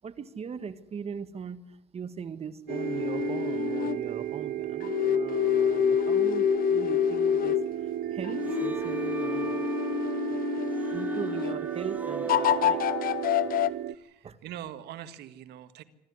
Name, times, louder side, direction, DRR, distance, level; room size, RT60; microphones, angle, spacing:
voice 1, 0.0-9.6 10.9-12.9 14.2-14.4, right 6 dB, 35° right, 12 dB, 1.7 m, -40 dB
sound 1, 2.7-4.0 4.8-7.7 8.2-11.6 12.3-13.7, left 11 dB, 60° left, 1.0 m, -27 dB
sound 2, 2.7-13.9, right 11 dB, 60° right, 0.7 m, -33 dB
sound 3, 8.4-13.6, right 3 dB, 10° right, 2.4 m, -40 dB
voice 2, 13.9-15.8, right 11 dB, 80° right, 10 dB, 1.7 m, -43 dB
25.5 x 13.5 x 9.6 m, 0.81 s
cardioid pair, 110°, 17 cm